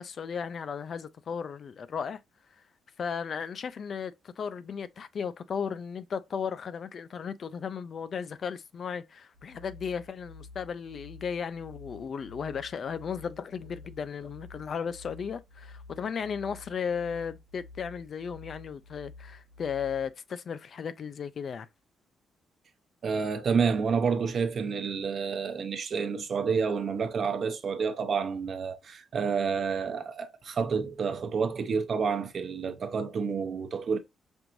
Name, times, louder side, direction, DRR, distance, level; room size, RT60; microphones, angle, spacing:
voice 1, 0.0-2.2 3.0-21.7, left 6 dB, 50° left, 0.4 m, -35 dB
sound 1, 9.3-20.1, left 3 dB, 85° right, 0.7 m, -50 dB
voice 2, 23.0-34.0, right 5 dB, 50° right, 0.8 m, -29 dB
5.3 x 2.5 x 3.0 m
cardioid pair, 90°, 0 cm